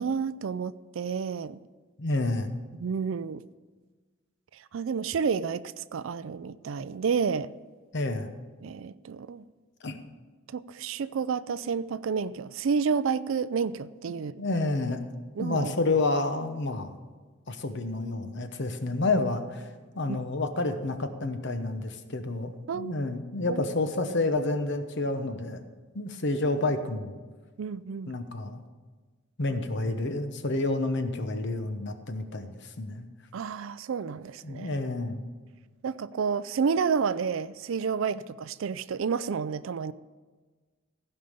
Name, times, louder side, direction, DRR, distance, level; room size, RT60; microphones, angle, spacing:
voice 1, 0.0-1.6 2.8-3.4 4.5-7.5 8.6-9.5 10.5-14.3 15.4-15.7 20.1-20.2 22.7-23.0 23.5-23.7 27.6-28.1 33.3-34.7 35.8-39.9, right 6 dB, 65° right, 0.4 m, -30 dB
voice 2, 2.0-2.5 7.9-8.3 9.8-10.0 14.4-15.0 15.4-16.9 17.5-19.7 19.9-25.6 25.9-27.2 28.1-28.6 29.4-33.1 34.4-35.2, left 2 dB, 55° left, 0.9 m, -29 dB
15.5 x 5.5 x 6.7 m
head